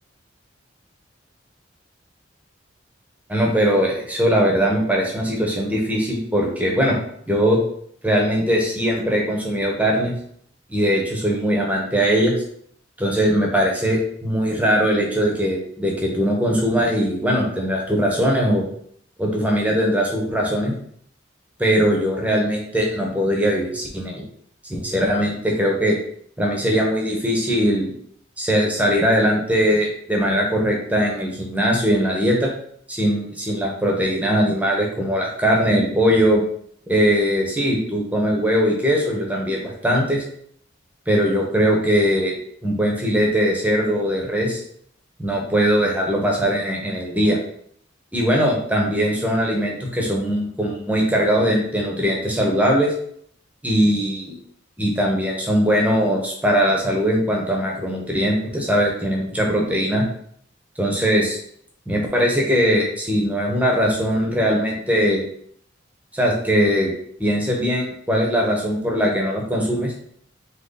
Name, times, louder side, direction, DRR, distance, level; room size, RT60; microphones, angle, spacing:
voice 1, 3.3-7.0 7.3-7.6 8.0-10.1 10.7-12.3 13.0-18.6 19.2-20.7 21.6-24.2 24.7-26.0 26.4-27.9 28.4-32.5 32.9-36.4 36.9-40.2 41.1-42.3 42.6-44.6 45.2-47.4 48.1-52.9 53.6-54.3 54.8-60.0 60.8-61.4 61.9-65.2 66.1-66.9 67.2-69.9, equal, 10° right, -1 dB, 0.9 m, -20 dB
3.8 x 3.0 x 3.9 m, 0.63 s
head